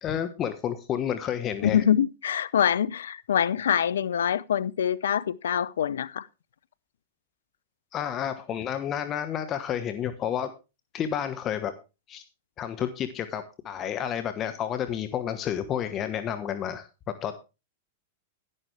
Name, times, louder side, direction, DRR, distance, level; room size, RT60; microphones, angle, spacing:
voice 1, 0.0-1.8 7.9-10.5 10.9-11.7 12.1-12.2 12.6-16.9 17.2-17.3, left 9 dB, 35° left, 1.2 m, -30 dB
voice 2, 1.6-6.3, left 9 dB, 75° left, 0.7 m, -25 dB
11.0 x 11.0 x 3.4 m
hypercardioid pair, 105°, 0 cm